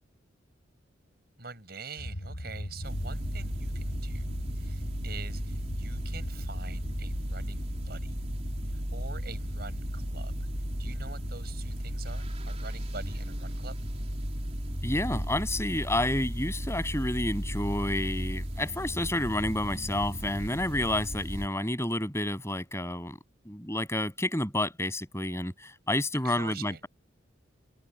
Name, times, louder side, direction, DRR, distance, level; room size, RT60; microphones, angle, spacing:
voice 1, 1.4-8.1 8.9-10.3 10.8-13.8 26.2-26.9, right 4 dB, 50° right, 6.8 m, -45 dB
sound 1, 2.0-12.3, equal, 80° left, 6.4 m, -41 dB
sound 2, 2.8-21.5, equal, 35° right, 3.7 m, -35 dB
voice 2, 14.8-23.2 23.5-26.9, left 1 dB, 15° left, 7.4 m, -30 dB
open air
head